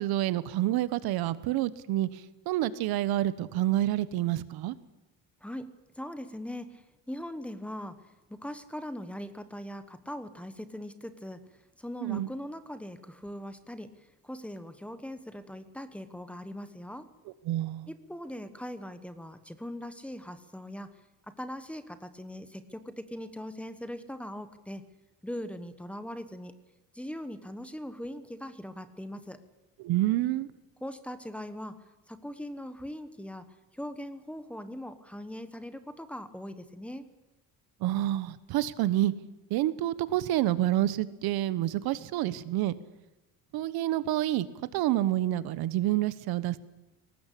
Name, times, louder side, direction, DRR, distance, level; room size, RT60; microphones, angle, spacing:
voice 1, 0.0-2.1 2.5-4.7 12.0-12.3 17.5-17.9 29.8-30.5 37.8-39.1 39.5-42.7 43.5-44.5 44.7-46.6, right 14 dB, 85° right, 16 dB, 1.2 m, -28 dB
voice 2, 5.4-8.0 8.3-11.4 11.8-13.9 14.2-17.1 17.9-21.0 21.3-24.9 25.2-26.6 26.9-29.4 30.8-33.4 33.7-37.1, left 1 dB, 5° left, 11 dB, 1.1 m, -40 dB
22.0 x 19.0 x 8.5 m, 1.0 s
cardioid pair, 170°, 36 cm